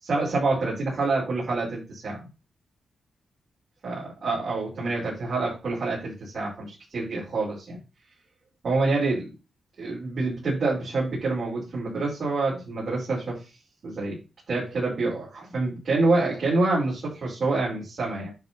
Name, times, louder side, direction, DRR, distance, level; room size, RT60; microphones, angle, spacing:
voice 1, 0.0-2.2 3.8-7.8 8.6-9.3 9.8-13.4 13.8-14.2 14.5-18.3, right 3 dB, 55° right, -6 dB, 5.3 m, -27 dB
10.5 x 4.0 x 5.9 m, 0.30 s
cardioid pair, 100°, 0 cm